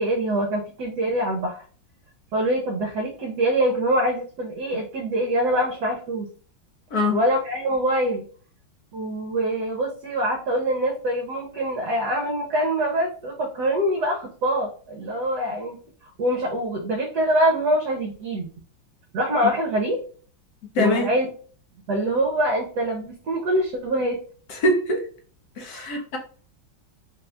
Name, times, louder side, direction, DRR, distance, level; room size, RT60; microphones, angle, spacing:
voice 1, 0.0-1.6 2.3-6.3 7.1-8.2 8.9-15.8 16.2-18.5 19.1-20.0 20.8-21.3 21.9-24.2 25.7-26.0, right 1 dB, 65° right, 1.2 m, -24 dB
voice 2, 20.7-21.1 24.5-25.1 25.6-26.2, left 1 dB, 60° left, 1.2 m, -23 dB
4.1 x 2.4 x 3.3 m
omnidirectional pair, 2.1 m